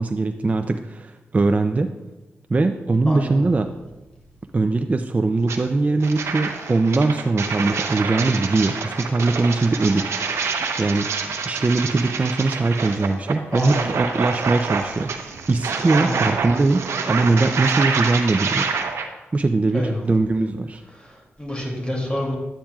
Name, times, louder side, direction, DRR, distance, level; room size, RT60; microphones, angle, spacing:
voice 1, 0.0-1.9 2.5-3.7 4.5-10.1 10.8-11.1 11.5-15.1 15.5-18.7 19.3-20.8, right 3 dB, 30° right, 7 dB, 0.4 m, -21 dB
sound 1, 5.5-5.6 6.0-19.1, right 5 dB, 80° right, 0.7 m, -27 dB
voice 2, 13.5-13.8 16.0-16.2 19.7-20.0 20.9-22.4, equal, 20° left, -1 dB, 2.6 m, -27 dB
10.0 x 8.6 x 2.4 m, 1.1 s
cardioid pair, 70°, 5 cm